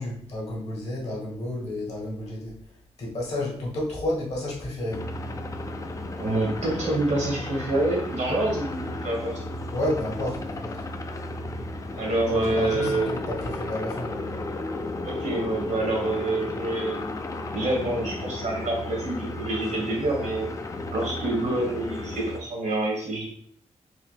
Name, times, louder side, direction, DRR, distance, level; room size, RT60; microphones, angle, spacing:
voice 1, 0.0-2.6 3.0-5.0 9.7-10.8 12.3-14.3, left 1 dB, 60° left, -3 dB, 1.6 m, -31 dB
sound 1, 4.9-22.4, left 2 dB, 30° left, 0.4 m, -34 dB
voice 2, 6.1-9.4 11.9-13.1 15.0-17.2 17.5-20.5 20.9-23.3, right 2 dB, 85° right, -2 dB, 1.6 m, -27 dB
4.6 x 2.3 x 3.3 m, 0.63 s
wide cardioid pair, 115°, 12 cm